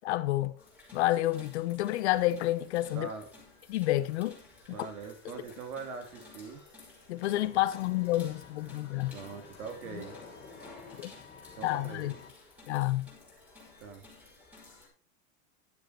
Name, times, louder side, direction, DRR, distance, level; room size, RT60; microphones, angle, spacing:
voice 1, 0.0-0.6 0.9-3.1 3.7-4.4 4.7-4.8 7.1-9.2 9.9-10.0 11.0-11.1 11.6-12.1 12.7-13.1, left 16 dB, 50° left, 1.0 m, -29 dB
sound 1, 0.6-14.9, left 3 dB, 5° right, 5.2 m, -53 dB
voice 2, 2.9-3.2 4.7-6.6 9.1-10.2 11.6-12.2 13.8-14.0, right 5 dB, 80° right, 3.8 m, -42 dB
Engine, 7.2-12.3, left 6 dB, 15° left, 3.0 m, -53 dB
12.0 x 7.7 x 4.7 m
supercardioid pair, 170°, 42 cm